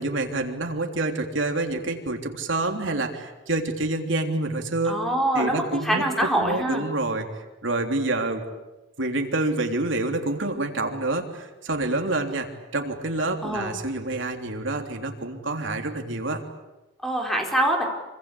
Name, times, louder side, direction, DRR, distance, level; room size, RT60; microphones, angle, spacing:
voice 1, 0.0-5.0 5.3-8.4 9.0-16.4, right 2 dB, 70° right, 4 dB, 3.4 m, -27 dB
voice 2, 4.9-6.8 13.4-13.7 17.0-17.8, right 1 dB, ahead, 1 dB, 4.4 m, -24 dB
27.0 x 25.5 x 8.6 m, 1.1 s
head